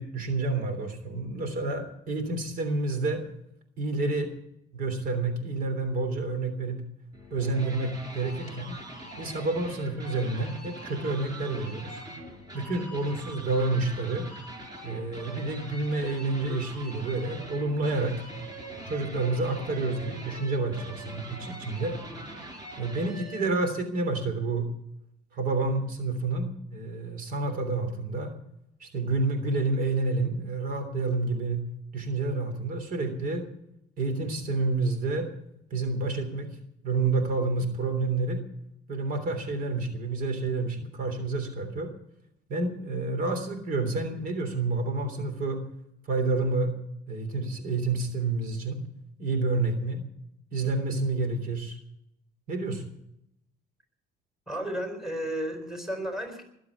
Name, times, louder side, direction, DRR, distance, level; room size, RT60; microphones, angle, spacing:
voice 1, 0.0-3.2 3.8-4.3 4.7-6.8 7.3-8.7 9.2-12.0 12.5-14.3 14.8-18.1 18.9-22.0 22.8-24.7 25.3-28.3 28.8-31.6 31.9-33.4 34.0-35.3 35.7-36.5 36.8-38.4 38.9-41.9 42.5-45.6 46.1-46.7 47.1-48.8 49.2-50.0 50.5-51.8 52.5-52.8, right 3 dB, 55° right, 7 dB, 3.3 m, -29 dB
sound 1, 7.1-23.6, right 1 dB, 25° right, 5.8 m, -43 dB
voice 2, 54.5-56.4, right 1 dB, ahead, 4 dB, 4.1 m, -33 dB
20.5 x 7.7 x 8.2 m, 0.77 s
cardioid pair, 110°, 17 cm